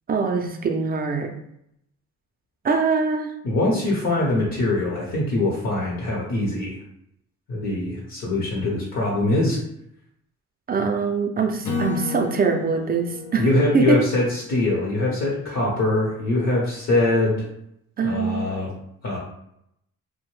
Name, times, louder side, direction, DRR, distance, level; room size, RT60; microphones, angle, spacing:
voice 1, 0.1-1.3 2.6-3.3 10.7-13.5 13.7-14.0 18.0-18.5, right 5 dB, 30° right, 4 dB, 0.4 m, -23 dB
voice 2, 3.4-6.7 7.5-9.6 13.4-17.4 18.0-18.7 19.0-19.2, left 2 dB, 60° left, -4 dB, 0.8 m, -23 dB
Acoustic guitar / Strum, 11.6-15.0, left 5 dB, 90° left, 0.6 m, -32 dB
2.6 x 2.0 x 3.1 m, 0.77 s
cardioid pair, 90°, 30 cm